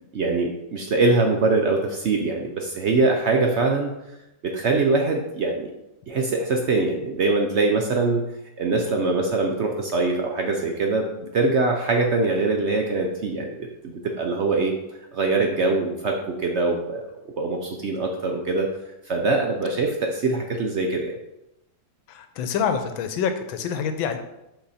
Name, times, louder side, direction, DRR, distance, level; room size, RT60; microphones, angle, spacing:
voice 1, 0.1-3.9 4.4-5.7 6.1-8.3 8.6-17.0 17.4-18.7 19.1-21.2, right 3 dB, 75° right, 2 dB, 0.6 m, -23 dB
voice 2, 22.1-24.2, left 7 dB, 85° left, 7 dB, 1.5 m, -26 dB
6.0 x 5.7 x 4.2 m, 0.90 s
omnidirectional pair, 2.1 m